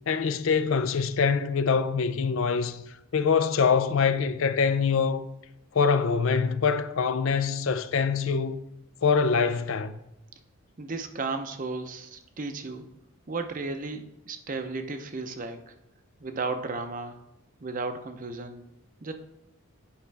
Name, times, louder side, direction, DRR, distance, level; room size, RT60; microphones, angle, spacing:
voice 1, 0.1-2.8 3.1-5.3 5.7-8.5 9.0-10.0, left 5 dB, 65° left, 0.5 m, -24 dB
voice 2, 10.8-12.8 13.3-15.7 16.2-17.2 17.6-18.6 19.0-19.1, right 3 dB, 35° right, 0.6 m, -34 dB
8.6 x 5.6 x 3.4 m
head